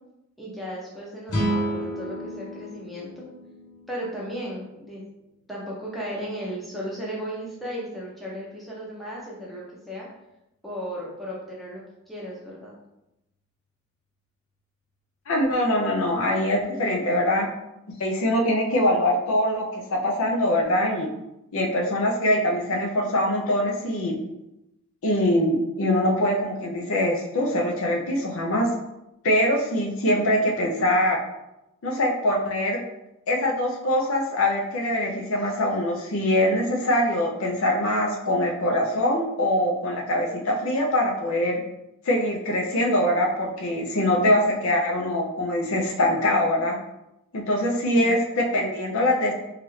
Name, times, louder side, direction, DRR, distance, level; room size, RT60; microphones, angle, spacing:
voice 1, 0.4-3.2 3.9-5.0 5.5-10.1 10.6-11.8 12.1-12.8 47.9-48.2, equal, ahead, -6 dB, 0.6 m, -35 dB
sound 1, 1.3-4.6, right 1 dB, 90° left, 0.9 m, -31 dB
voice 2, 15.3-17.5 18.0-21.1 21.5-24.2 25.0-28.7 29.2-31.2 31.8-32.8 33.3-41.6 42.1-46.8 47.3-49.3, left 1 dB, 65° left, 0 dB, 0.5 m, -23 dB
3.0 x 2.4 x 3.1 m, 0.89 s
head